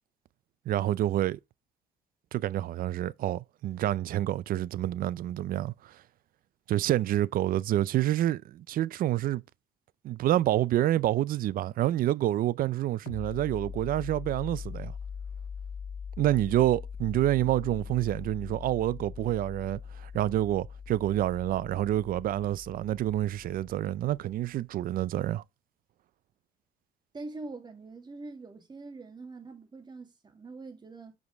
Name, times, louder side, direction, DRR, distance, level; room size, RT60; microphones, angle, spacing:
voice 1, 0.7-1.4 2.3-6.0 6.7-9.4 10.0-14.9 16.2-25.4, right 13 dB, 55° right, 0.5 m, -28 dB
sound 1, 13.1-24.4, left 6 dB, 70° left, 1.4 m, -42 dB
voice 2, 27.1-31.1, right 3 dB, 25° right, 2.3 m, -43 dB
8.1 x 5.2 x 3.5 m
cardioid pair, 110°, 17 cm